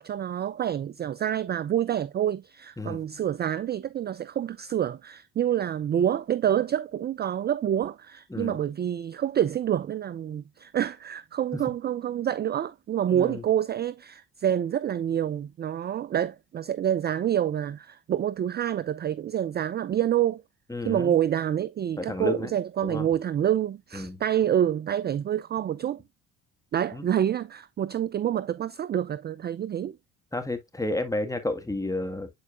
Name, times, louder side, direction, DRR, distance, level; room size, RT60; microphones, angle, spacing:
voice 1, 0.0-20.4 20.8-26.0 26.7-30.0, right 10 dB, 25° right, 0.4 m, -27 dB
voice 2, 13.1-13.4 20.7-21.2 22.0-22.5 22.8-23.1 23.9-24.2 26.9-27.1 30.3-32.3, left 2 dB, 10° left, 1.7 m, -31 dB
9.3 x 4.6 x 2.4 m
hypercardioid pair, 60°, 42 cm